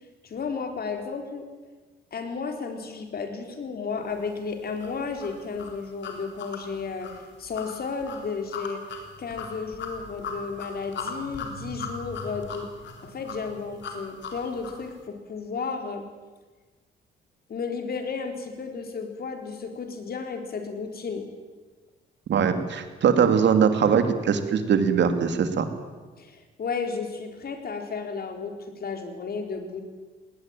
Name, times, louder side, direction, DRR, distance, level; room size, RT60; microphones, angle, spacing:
voice 1, 0.2-1.4 2.1-12.7 13.0-16.1 17.5-21.3 26.2-28.5 28.8-29.8, left 5 dB, 50° left, 5 dB, 4.2 m, -33 dB
sound 1, 4.8-14.9, left 4 dB, 65° left, 4.0 m, -38 dB
voice 2, 22.3-25.7, right 7 dB, 65° right, 9 dB, 2.6 m, -21 dB
19.5 x 18.5 x 9.0 m, 1.4 s
cardioid pair, 90°, 20 cm